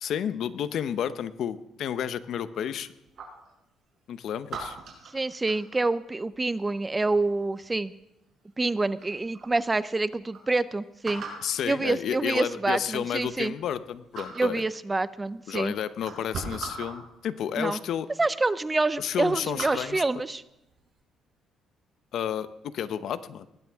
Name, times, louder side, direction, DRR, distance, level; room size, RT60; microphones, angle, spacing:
voice 1, 0.0-2.9 4.1-4.8 11.4-14.6 15.5-18.1 19.0-20.0 22.1-23.5, left 9 dB, 65° left, 13 dB, 0.7 m, -31 dB
sound 1, 2.5-3.5 4.5-5.9 7.6-8.0 8.6-8.7 9.0-9.6 10.0-10.1 10.3-10.4 11.0-11.5 12.5-12.6 13.0-13.8 14.1-14.6 15.4-15.5 15.9-17.0 17.8-17.9 18.3-18.5 18.9-20.1 20.6-20.9, right 4 dB, 55° right, 6.4 m, -40 dB
voice 2, 5.1-7.9 8.6-11.2 11.6-13.5 14.4-15.7 17.6-17.8 18.2-20.4, right 2 dB, 15° right, 16 dB, 0.5 m, -27 dB
20.0 x 15.5 x 3.5 m, 0.89 s
cardioid pair, 115°, 0 cm